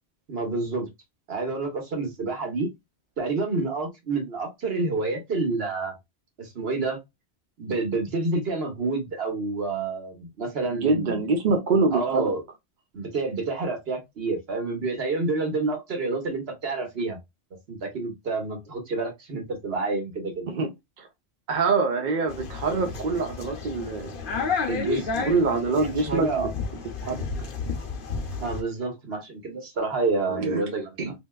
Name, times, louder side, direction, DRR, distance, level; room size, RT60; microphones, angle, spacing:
voice 1, 0.3-0.9 1.3-2.7 3.2-5.9 6.4-7.0 7.6-11.2 11.9-12.4 12.9-17.2 17.7-20.5 24.7-25.3 25.7-26.5 28.4-31.1, right 3 dB, 65° right, 1.2 m, -28 dB
voice 2, 10.8-12.3 20.5-20.7 21.0-21.1 21.5-24.9 25.3-26.3 27.0-27.2 30.4-30.6 31.0-31.1, right 4 dB, 50° right, 0.7 m, -25 dB
sound 1, 22.3-28.6, left 5 dB, 55° left, 0.8 m, -32 dB
3.2 x 2.8 x 2.2 m
omnidirectional pair, 1.1 m